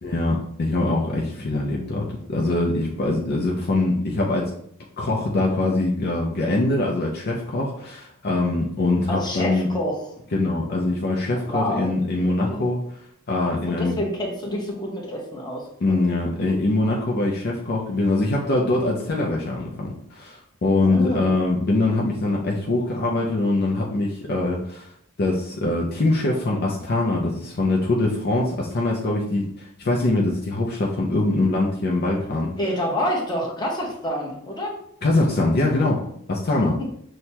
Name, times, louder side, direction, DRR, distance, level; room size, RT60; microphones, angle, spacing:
voice 1, 0.0-4.5 5.0-9.7 10.3-12.8 13.3-14.0 15.8-24.9 25.2-32.5 35.0-36.0 36.3-36.8, left 2 dB, 50° left, -2 dB, 0.5 m, -23 dB
voice 2, 9.1-10.0 11.3-11.9 12.2-12.7 13.7-15.7 20.8-21.3 32.6-34.7 36.6-36.7, left 1 dB, 20° left, -2 dB, 1.0 m, -28 dB
6.2 x 2.2 x 2.8 m, 0.68 s
head